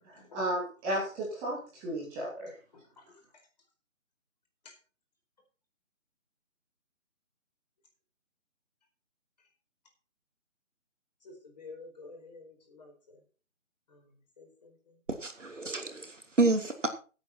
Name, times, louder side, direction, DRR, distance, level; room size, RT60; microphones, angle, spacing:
voice 1, 0.3-2.5, right 1 dB, 10° right, 2.5 m, -33 dB
voice 2, 11.2-13.2 13.9-14.0 14.4-14.9, left 3 dB, 30° left, 4.5 m, -50 dB
voice 3, 15.2-16.9, right 3 dB, 65° right, 2.9 m, -29 dB
16.5 x 8.5 x 4.4 m
figure-of-eight pair, 155°, 40 cm